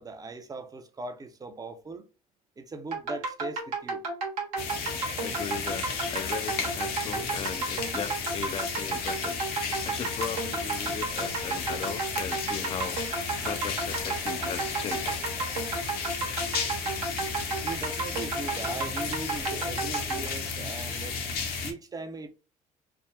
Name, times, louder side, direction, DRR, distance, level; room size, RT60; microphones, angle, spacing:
voice 1, 0.0-2.1 2.6-4.0 17.6-21.2 21.6-22.3, right 3 dB, 20° right, 0.6 m, -39 dB
sound 1, 2.9-20.3, right 3 dB, 75° right, 1.1 m, -32 dB
sound 2, 4.6-21.7, left 5 dB, 60° left, 0.8 m, -33 dB
voice 2, 5.2-13.0 13.4-15.2, left 7 dB, 30° left, 0.5 m, -38 dB
3.4 x 2.1 x 2.4 m
hypercardioid pair, 60°, 18 cm